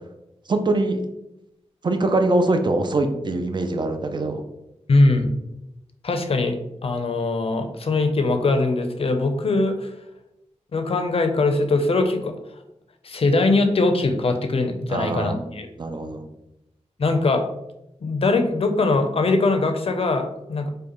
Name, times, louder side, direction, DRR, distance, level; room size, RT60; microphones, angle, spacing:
voice 1, 0.5-1.0 1.8-4.4 14.9-15.5 15.8-16.3, right 2 dB, 40° right, 6 dB, 0.5 m, -23 dB
voice 2, 4.9-5.3 6.0-6.6 6.8-9.9 10.7-12.3 13.0-15.7 17.0-17.4 18.0-20.7, left 3 dB, 55° left, 6 dB, 0.5 m, -21 dB
4.9 x 2.3 x 3.0 m, 0.88 s
wide cardioid pair, 70°, 12 cm